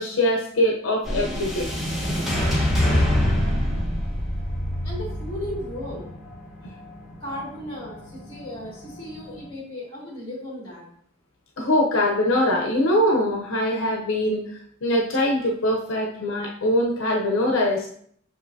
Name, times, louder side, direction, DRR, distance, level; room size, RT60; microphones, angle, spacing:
voice 1, 0.0-1.7 11.6-17.9, left 1 dB, 75° left, 0 dB, 0.7 m, -22 dB
sound 1, 1.0-9.4, left 1 dB, ahead, 1.2 m, -26 dB
voice 2, 4.8-6.1 7.2-10.8, left 1 dB, 25° left, -5 dB, 2.7 m, -35 dB
6.6 x 5.5 x 2.7 m, 0.63 s
head